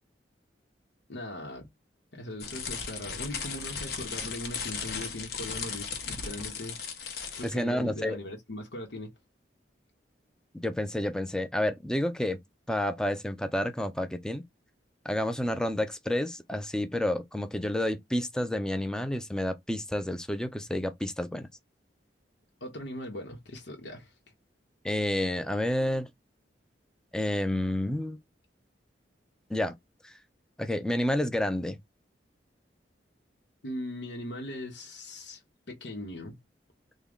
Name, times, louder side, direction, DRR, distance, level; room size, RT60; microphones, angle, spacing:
voice 1, 1.1-1.7 2.1-6.8 7.3-9.1 22.6-24.1 33.6-35.4 35.7-36.4, left 1 dB, 85° left, 1.0 m, -39 dB
sound 1, 2.4-7.6, left 6 dB, 60° left, 1.0 m, -36 dB
voice 2, 7.4-8.2 10.5-12.4 12.7-14.4 15.0-21.5 24.8-26.1 27.1-28.2 29.5-29.8 30.6-31.8, left 1 dB, 5° left, 0.4 m, -29 dB
3.7 x 2.2 x 3.5 m
head